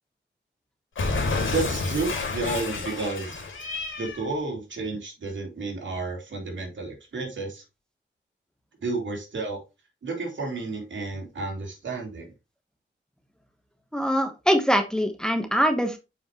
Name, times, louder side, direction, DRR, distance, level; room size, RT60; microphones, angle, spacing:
Cat, 1.0-4.3, left 3 dB, 85° left, 2.4 m, -29 dB
voice 1, 1.5-3.4 4.0-7.6 8.8-9.6 10.0-12.3, right 3 dB, 70° right, 0 dB, 3.2 m, -31 dB
voice 2, 13.9-16.0, equal, 5° left, 5 dB, 1.1 m, -23 dB
7.3 x 5.5 x 3.0 m, 0.26 s
wide cardioid pair, 135°, 20 cm